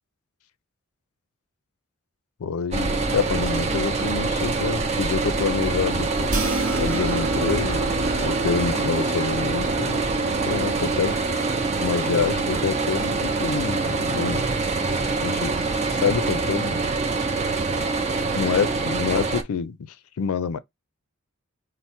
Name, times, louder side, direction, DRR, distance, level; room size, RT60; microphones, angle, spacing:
voice 1, 2.4-6.5 6.7-10.1 10.5-11.1 11.8-14.5 15.2-15.5 15.9-16.8 18.4-19.8 20.2-20.6, left 6 dB, 85° left, 0.4 m, -27 dB
sound 1, 2.7-19.4, right 3 dB, 30° right, 0.5 m, -25 dB
sound 2, 6.3-12.8, right 2 dB, 60° right, 0.9 m, -32 dB
4.3 x 2.0 x 4.3 m
head